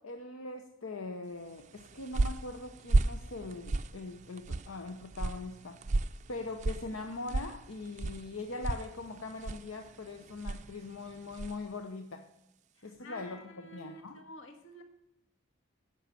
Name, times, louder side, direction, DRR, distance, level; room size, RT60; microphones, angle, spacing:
voice 1, 0.0-5.8 6.3-12.2 12.8-14.2, left 3 dB, 90° left, 5 dB, 0.8 m, -41 dB
sound 1, 1.6-11.7, right 2 dB, 35° right, 0.4 m, -35 dB
voice 2, 12.7-14.8, equal, 70° left, 4 dB, 1.6 m, -50 dB
10.0 x 5.6 x 7.6 m, 0.88 s
head